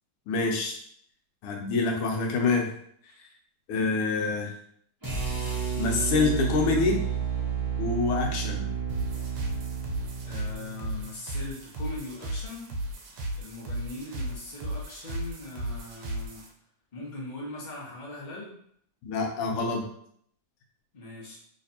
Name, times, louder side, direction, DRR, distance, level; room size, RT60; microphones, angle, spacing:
voice 1, 0.3-0.8 1.4-2.7 3.7-4.5 5.8-7.0 7.8-8.7 19.0-19.8, left 4 dB, 80° left, 1 dB, 1.6 m, -26 dB
sound 1, 5.0-11.2, right 7 dB, 20° right, 0.5 m, -31 dB
sound 2, 8.9-16.5, right 1 dB, 90° right, 1.7 m, -35 dB
voice 2, 10.2-12.7 13.3-16.4 16.9-18.5 20.9-21.4, left 2 dB, 45° left, -4 dB, 0.5 m, -40 dB
3.2 x 3.2 x 2.8 m, 0.66 s
omnidirectional pair, 2.4 m